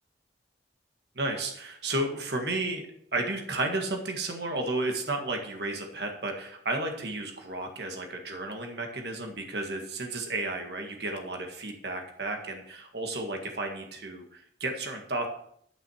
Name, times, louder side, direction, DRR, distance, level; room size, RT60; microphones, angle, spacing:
voice 1, 1.2-2.9 3.1-15.3, right 2 dB, 65° right, 3 dB, 1.7 m, -33 dB
11.5 x 6.1 x 6.3 m, 0.68 s
head